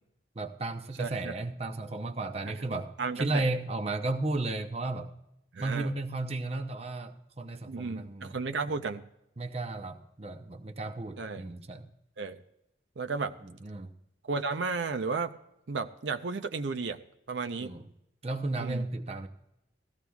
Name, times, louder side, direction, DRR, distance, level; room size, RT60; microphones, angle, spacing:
voice 1, 0.4-5.1 5.6-8.4 8.7-8.8 9.4-11.9 13.4-13.9 17.6-17.9 18.2-19.3, right 2 dB, 35° right, 7 dB, 0.7 m, -34 dB
voice 2, 1.0-1.3 3.0-3.5 5.5-5.9 7.7-9.0 11.2-11.4 12.2-12.4 13.0-13.4 14.3-15.3 15.7-17.0 17.3-17.7 18.6-18.8, right 4 dB, 80° right, 7 dB, 0.6 m, -33 dB
18.0 x 14.5 x 2.3 m, 0.83 s
head